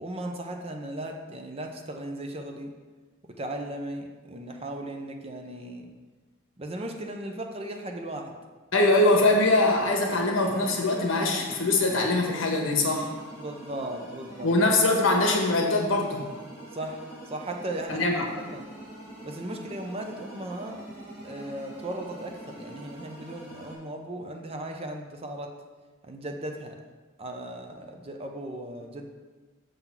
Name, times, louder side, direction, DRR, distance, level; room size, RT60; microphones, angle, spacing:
voice 1, 0.0-2.7 3.4-5.9 6.6-8.3 13.3-14.5 16.7-18.1 18.5-18.7 19.2-20.8 21.2-25.5 26.0-26.8 27.2-29.1, right 1 dB, 30° right, 3 dB, 0.6 m, -37 dB
voice 2, 8.7-13.1 14.4-16.2 17.9-18.2, left 2 dB, 80° left, 1 dB, 1.3 m, -23 dB
sound 1, 8.9-23.7, right 1 dB, 15° right, 2.4 m, -44 dB
6.8 x 3.9 x 5.9 m, 1.3 s
head